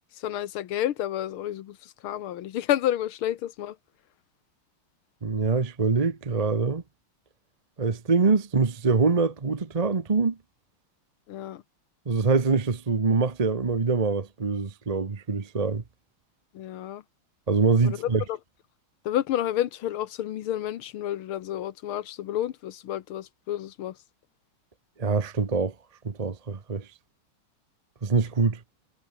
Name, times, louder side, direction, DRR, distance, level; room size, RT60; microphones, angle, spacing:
voice 1, 0.1-3.8 11.3-11.6 16.5-17.0 17.8-18.4 19.1-24.0, left 12 dB, 85° left, 1.9 m, -30 dB
voice 2, 5.2-6.8 7.8-10.4 12.1-15.8 17.5-18.2 25.0-25.7 26.0-26.9 28.0-28.6, right 4 dB, 30° right, 0.7 m, -24 dB
omnidirectional pair, 2.3 m